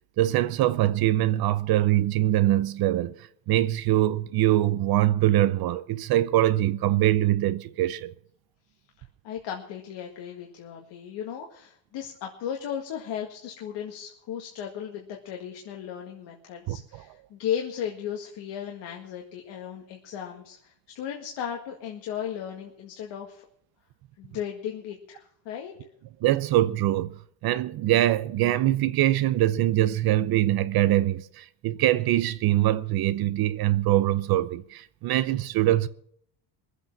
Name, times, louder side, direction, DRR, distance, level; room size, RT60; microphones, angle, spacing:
voice 1, 0.2-8.1 16.7-17.0 26.2-27.1 27.4-35.9, right 14 dB, 55° right, 0.8 m, -23 dB
voice 2, 9.2-23.5 24.2-25.7, left 9 dB, 70° left, 2.0 m, -36 dB
22.0 x 8.2 x 6.0 m
cardioid pair, 160°, 45 cm